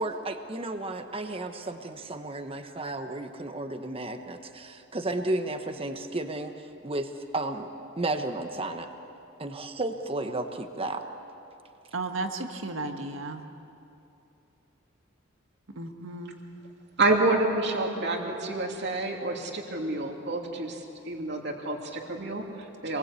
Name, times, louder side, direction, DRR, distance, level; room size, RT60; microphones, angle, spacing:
voice 1, 0.0-6.5 6.8-7.7 8.0-8.9 9.4-11.0, right 2 dB, 30° right, 6 dB, 1.2 m, -33 dB
voice 2, 11.9-13.4 15.7-16.4, right 2 dB, 80° right, 5 dB, 1.8 m, -34 dB
voice 3, 17.0-23.0, right 2 dB, 60° right, 1 dB, 2.9 m, -28 dB
26.5 x 21.0 x 8.4 m, 2.8 s
head